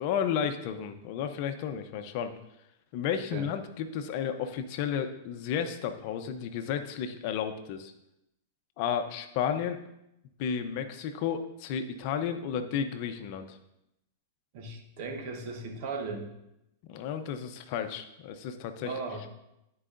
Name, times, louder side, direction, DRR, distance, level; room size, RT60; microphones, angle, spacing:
voice 1, 0.0-2.3 2.9-7.9 8.8-9.8 10.4-13.6 16.9-18.9, left 8 dB, 55° left, 8 dB, 0.7 m, -32 dB
voice 2, 14.5-16.3 18.8-19.3, right 3 dB, 55° right, 3 dB, 1.4 m, -37 dB
13.5 x 4.8 x 2.6 m, 0.86 s
hypercardioid pair, 120°, 0 cm